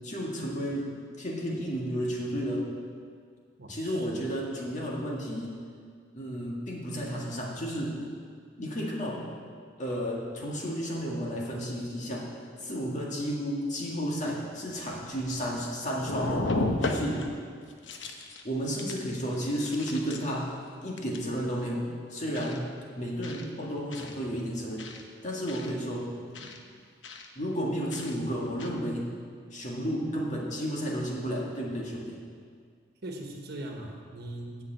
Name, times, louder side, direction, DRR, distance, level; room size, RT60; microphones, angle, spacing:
voice 1, 0.0-0.9 1.2-2.6 3.7-5.6 6.1-8.0 8.6-9.3 9.8-12.3 12.6-16.5 16.8-17.2 18.4-20.5 20.8-21.8 22.1-22.7 23.0-24.9 25.2-26.5 27.4-29.1 29.5-32.2, equal, 40° left, -2 dB, 1.9 m, -32 dB
voice 2, 3.6-4.0 33.0-34.6, right 1 dB, 60° right, 1 dB, 1.4 m, -40 dB
sound 1, 14.1-14.2 14.7-15.7 16.0-17.3 17.7-18.4 18.8-19.0 19.4-20.4 21.0-21.3 22.3-22.6 23.2-23.5 23.9-24.1 24.8-25.0 25.5-25.7 26.3-26.6 27.0-27.3 27.9-28.1 28.6-28.7, left 2 dB, 85° left, 0.9 m, -34 dB
8.5 x 6.9 x 8.5 m, 2.1 s
head